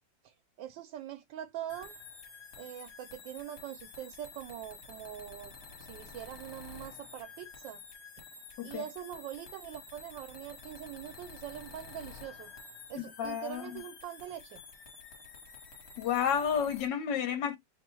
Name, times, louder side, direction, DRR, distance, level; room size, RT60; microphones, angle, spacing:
voice 1, 0.2-1.9 2.6-5.5 5.8-7.8 8.6-12.5 12.9-14.6, right 11 dB, 85° right, 1.3 m, -43 dB
sound 1, 1.7-16.9, left 4 dB, 55° left, 1.6 m, -50 dB
voice 2, 12.9-13.8 16.0-17.6, left 8 dB, 75° left, 1.4 m, -31 dB
3.3 x 2.2 x 4.2 m
omnidirectional pair, 2.0 m